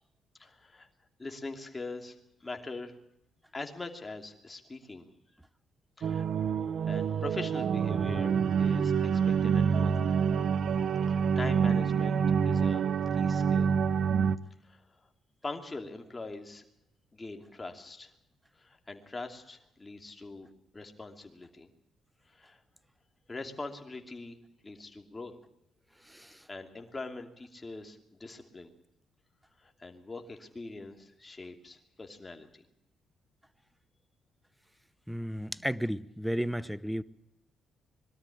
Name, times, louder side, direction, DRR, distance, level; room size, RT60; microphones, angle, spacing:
voice 1, 0.4-0.9 1.2-3.0 3.5-5.1 6.0-6.3 6.8-9.9 11.1-12.8 13.1-13.7 14.6-14.9 15.4-16.6 17.1-18.1 18.6-20.5 20.7-21.7 22.3-22.6 23.3-24.4 24.6-25.3 26.5-28.7 29.6-32.5, left 3 dB, 20° left, 4 dB, 2.8 m, -42 dB
sound 1, 6.0-14.4, right 6 dB, 60° right, 0.7 m, -27 dB
voice 2, 35.1-37.0, equal, 5° right, 16 dB, 0.7 m, -33 dB
22.0 x 13.0 x 10.0 m, 0.81 s
cardioid pair, 90°, 0 cm